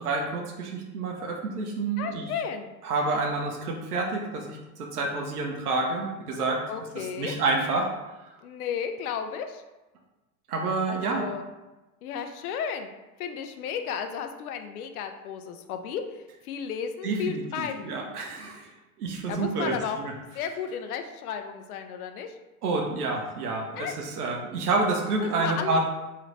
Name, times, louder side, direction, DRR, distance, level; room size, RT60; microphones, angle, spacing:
voice 1, 0.0-2.2 2.8-6.6 7.0-7.9 10.5-11.3 17.0-18.7 19.0-20.1 22.6-25.8, right 3 dB, 90° right, 0 dB, 0.9 m, -28 dB
voice 2, 2.0-2.7 6.7-7.4 8.4-9.6 10.9-11.5 12.0-12.9 13.2-18.0 19.3-20.0 20.3-22.4 23.8-23.9 25.2-25.8, left 7 dB, 80° left, 7 dB, 0.6 m, -33 dB
3.2 x 3.1 x 3.8 m, 1.1 s
hypercardioid pair, 100°, 44 cm